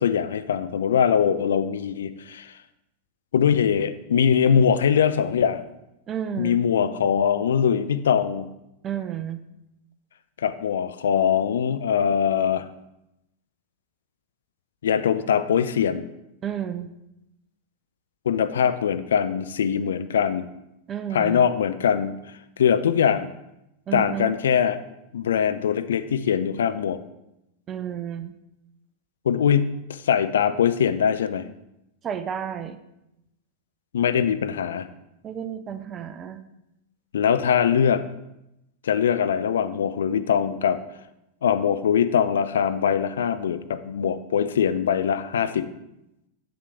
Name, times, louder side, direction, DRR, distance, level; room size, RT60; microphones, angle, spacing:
voice 1, 0.0-2.5 3.3-5.6 6.4-8.5 10.4-12.7 14.8-16.0 18.3-20.5 21.1-22.1 22.6-23.3 23.9-24.8 25.1-27.0 29.3-31.5 33.9-34.9 37.1-38.0 38.8-40.8 41.4-45.7, left 8 dB, 65° left, 12 dB, 0.4 m, -22 dB
voice 2, 6.1-6.6 8.8-9.4 16.4-16.9 20.9-21.5 23.9-24.3 27.7-28.3 32.0-32.8 35.2-36.4, right 9 dB, 25° right, 10 dB, 0.5 m, -31 dB
8.2 x 7.7 x 3.3 m, 0.87 s
figure-of-eight pair, 90°, 0 cm